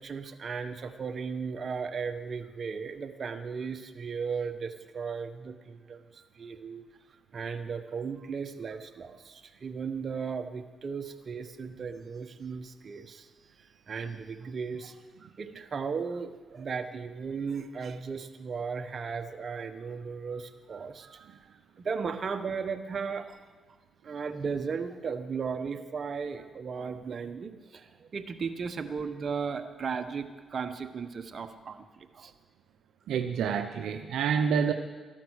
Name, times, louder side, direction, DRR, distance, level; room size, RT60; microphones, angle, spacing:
voice 1, 0.0-6.8 7.3-13.3 13.6-23.4 24.0-32.3, right 5 dB, 50° right, 8 dB, 1.2 m, -36 dB
voice 2, 33.1-34.7, right 7 dB, 85° right, 6 dB, 0.7 m, -27 dB
14.5 x 12.0 x 6.4 m, 1.4 s
cardioid pair, 70°, 0 cm